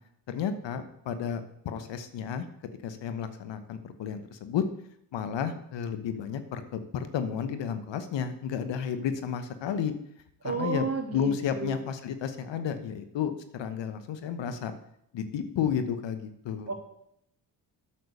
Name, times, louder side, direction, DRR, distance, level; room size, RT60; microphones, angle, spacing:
voice 1, 0.3-2.5 2.8-4.6 5.1-9.9 10.4-14.7 15.1-16.7, left 7 dB, 65° left, 10 dB, 1.1 m, -32 dB
voice 2, 10.4-11.8 16.7-16.8, right 4 dB, 30° right, 1 dB, 2.7 m, -32 dB
8.4 x 6.6 x 6.6 m, 0.74 s
supercardioid pair, 55°, 47 cm